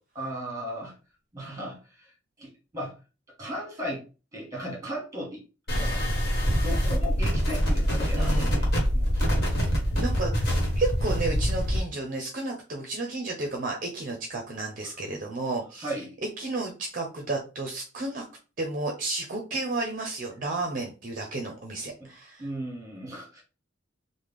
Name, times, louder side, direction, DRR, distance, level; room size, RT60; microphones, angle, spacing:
voice 1, 0.1-0.9 1.3-2.1 2.4-2.9 3.4-4.0 4.3-5.4 5.7-6.0 6.5-9.2 15.8-16.1 22.0-22.1 22.4-23.4, equal, 15° right, -1 dB, 1.3 m, -36 dB
sound 1, 5.7-11.8, equal, 70° left, 0.6 m, -26 dB
sound 2, 5.7-11.8, equal, 55° left, 1.2 m, -31 dB
voice 2, 8.2-8.5 10.0-15.9 16.4-18.2 18.6-22.5, right 2 dB, 45° right, 1 dB, 0.5 m, -32 dB
3.2 x 2.1 x 3.4 m, 0.33 s
head